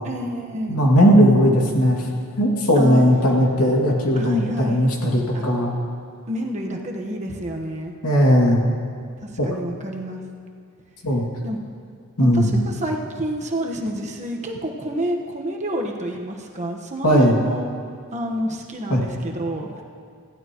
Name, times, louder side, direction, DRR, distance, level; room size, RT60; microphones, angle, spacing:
voice 1, 0.0-0.8 2.7-3.0 4.1-4.9 5.3-5.5 6.3-7.9 9.2-10.2 11.4-11.6 12.2-17.7 18.1-19.7, equal, 30° right, 1 dB, 1.3 m, -29 dB
voice 2, 0.7-2.1 2.4-5.8 8.0-8.6 9.4-9.5 11.0-11.2 12.2-12.6 17.0-17.4 18.9-19.0, equal, 85° left, -2 dB, 2.5 m, -17 dB
21.0 x 15.0 x 3.1 m, 2.2 s
head